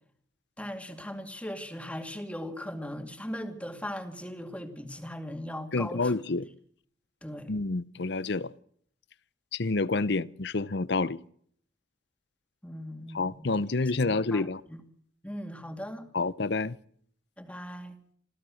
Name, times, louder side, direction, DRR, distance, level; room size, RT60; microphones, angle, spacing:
voice 1, 0.6-6.2 7.2-7.5 12.6-13.6 14.0-14.8 15.2-16.1 17.4-18.0, equal, 5° left, 2.4 m, -39 dB
voice 2, 5.7-6.4 7.5-8.5 9.5-11.2 13.1-14.6 16.1-16.8, left 3 dB, 65° left, 0.7 m, -28 dB
27.0 x 15.5 x 6.4 m
head